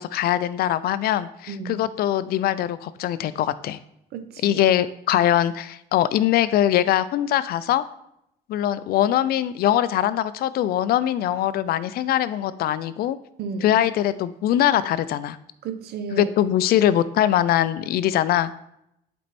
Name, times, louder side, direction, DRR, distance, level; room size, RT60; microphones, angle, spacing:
voice 1, 0.0-3.8 4.4-7.8 8.5-13.2 13.6-15.4 16.1-18.5, left 11 dB, 65° left, 16 dB, 0.4 m, -22 dB
voice 2, 1.5-1.8 4.1-4.6 13.4-13.8 15.6-16.3, right 5 dB, 70° right, 9 dB, 0.9 m, -33 dB
8.3 x 4.4 x 4.2 m, 0.78 s
cardioid pair, 110°, 17 cm